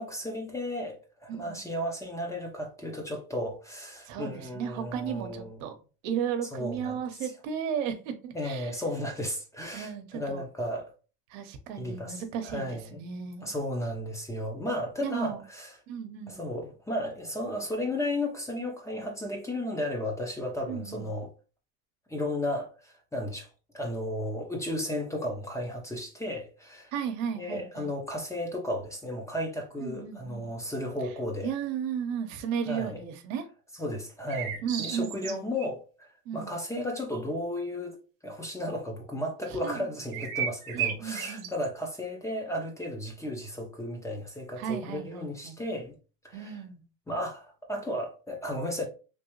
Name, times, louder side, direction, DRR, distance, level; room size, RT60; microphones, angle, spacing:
voice 1, 0.0-5.6 6.5-7.3 8.3-10.9 11.8-12.9 13.4-15.7 16.3-21.3 22.1-23.5 23.7-26.9 27.3-31.5 32.7-33.0 33.8-38.0 38.2-45.9 46.2-46.5 47.1-48.9, left 1 dB, 10° left, 0.6 m, -34 dB
voice 2, 1.3-1.6 4.1-5.7 6.0-8.7 9.7-10.4 11.3-13.5 15.0-15.4 15.9-16.4 20.7-21.1 26.9-27.9 29.8-30.5 31.4-33.5 34.6-35.5 36.2-36.5 39.5-39.9 40.7-41.5 44.6-45.6 46.3-46.8, right 8 dB, 80° right, 0.8 m, -34 dB
sound 1, 34.3-35.7 40.1-41.7, right 8 dB, 60° right, 1.0 m, -33 dB
3.3 x 2.7 x 2.9 m
cardioid pair, 135°, 39 cm